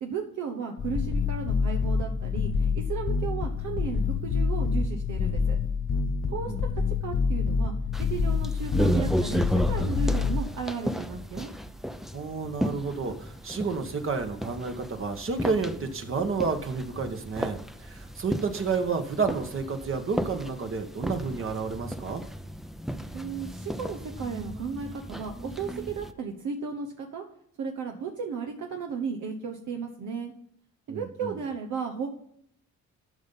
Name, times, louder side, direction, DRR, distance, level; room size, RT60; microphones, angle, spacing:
voice 1, 0.0-5.6 6.3-6.5 7.0-7.7 8.0-11.5 23.1-27.2 27.6-30.3 30.9-32.1, right 5 dB, 75° right, 3 dB, 1.2 m, -35 dB
sound 1, 0.8-10.4, left 5 dB, 40° left, 0.8 m, -27 dB
voice 2, 6.3-6.6 12.1-22.2 30.9-31.3, right 4 dB, 45° right, 5 dB, 1.4 m, -30 dB
sound 2, 7.9-26.1, equal, ahead, 0.6 m, -34 dB
11.5 x 5.5 x 5.5 m, 0.70 s
cardioid pair, 90°, 30 cm